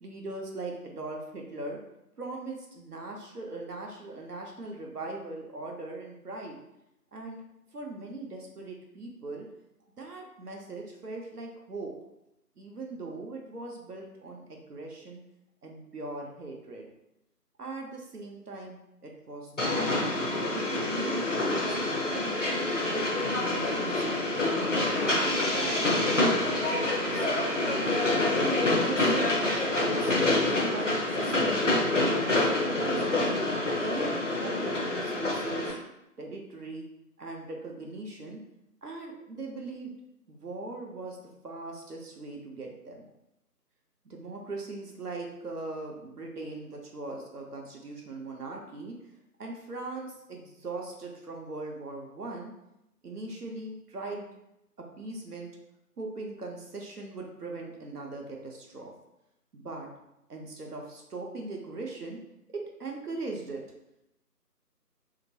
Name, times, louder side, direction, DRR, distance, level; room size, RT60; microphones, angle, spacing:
voice 1, 0.0-1.8 2.2-6.6 7.1-7.4 7.7-9.5 10.0-11.9 12.6-15.2 15.6-16.9 17.6-18.8 19.0-22.2 22.9-24.6 25.0-28.2 28.8-33.1 33.7-35.8 36.2-36.8 37.2-38.4 38.8-39.9 40.3-41.2 41.4-43.0 44.0-48.9 49.4-52.5 53.0-54.3 54.8-55.5 56.0-58.9 59.5-59.9 60.3-62.2 62.5-63.6, right 2 dB, 70° right, 0 dB, 0.7 m, -40 dB
Train, 19.6-35.7, left 2 dB, 50° left, 0.6 m, -27 dB
2.9 x 2.9 x 2.7 m, 0.85 s
figure-of-eight pair, 165°, 48 cm